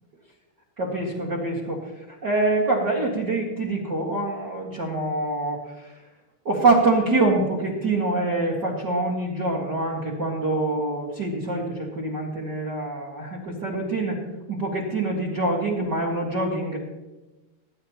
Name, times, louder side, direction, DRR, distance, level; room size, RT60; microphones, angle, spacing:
voice 1, 0.8-6.0 6.4-14.2 14.5-16.8, right 2 dB, 45° right, -4 dB, 1.5 m, -25 dB
22.0 x 11.0 x 2.9 m, 1.1 s
omnidirectional pair, 4.5 m